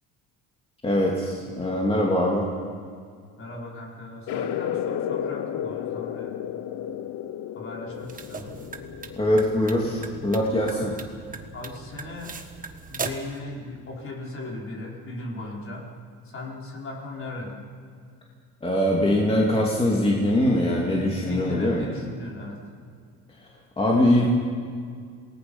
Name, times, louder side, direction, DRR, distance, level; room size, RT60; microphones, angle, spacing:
voice 1, 0.8-2.4 9.2-10.9 18.6-21.9 23.8-24.3, left 1 dB, 15° left, -3 dB, 2.7 m, -22 dB
voice 2, 3.4-6.3 7.5-8.6 10.7-10.9 11.5-12.4 12.9-15.9 16.2-17.6 21.2-22.6, left 2 dB, 40° left, -2 dB, 4.7 m, -37 dB
sound 1, 4.3-10.4, left 9 dB, 55° left, 0.9 m, -33 dB
sound 2, 7.9-13.4, right 5 dB, 25° right, 1.4 m, -39 dB
28.0 x 19.5 x 5.6 m, 2.1 s
cardioid pair, 140°, 34 cm